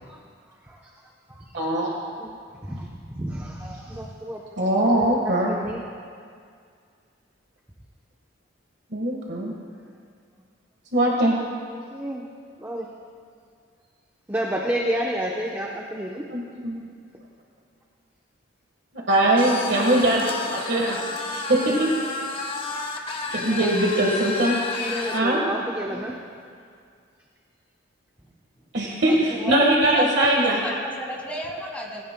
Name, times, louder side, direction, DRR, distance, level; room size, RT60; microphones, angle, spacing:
voice 1, 1.5-1.9 4.6-5.5 8.9-9.5 10.9-11.4 16.3-16.8 19.1-20.2 20.5-21.0 21.3-22.2 23.3-24.6 25.1-25.4 28.7-30.6, right 1 dB, 60° right, -2 dB, 1.5 m, -21 dB
voice 2, 2.6-4.4 5.5-5.8 11.7-12.2 12.6-12.9 14.3-16.2 24.7-26.2, equal, 10° right, -2 dB, 0.8 m, -30 dB
sound 1, 19.4-25.3, left 3 dB, 30° left, 0.9 m, -31 dB
voice 3, 23.3-23.8 25.6-26.1 28.2-28.3 29.1-32.0, equal, 10° left, -2 dB, 1.9 m, -34 dB
19.0 x 16.0 x 2.2 m, 2.2 s
head